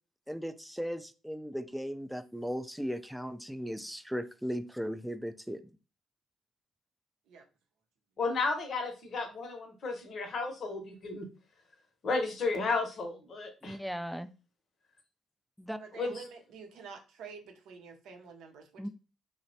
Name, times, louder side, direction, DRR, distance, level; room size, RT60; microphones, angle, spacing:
voice 1, 0.3-5.6 13.6-14.3 15.6-15.8 18.8-18.9, equal, ahead, 10 dB, 0.3 m, -37 dB
voice 2, 8.2-11.3 12.0-13.8 15.9-16.1, left 3 dB, 55° left, 5 dB, 0.7 m, -33 dB
voice 3, 15.8-18.9, right 5 dB, 75° right, 3 dB, 0.6 m, -48 dB
3.1 x 2.0 x 2.7 m, 0.32 s
hypercardioid pair, 55°, 0 cm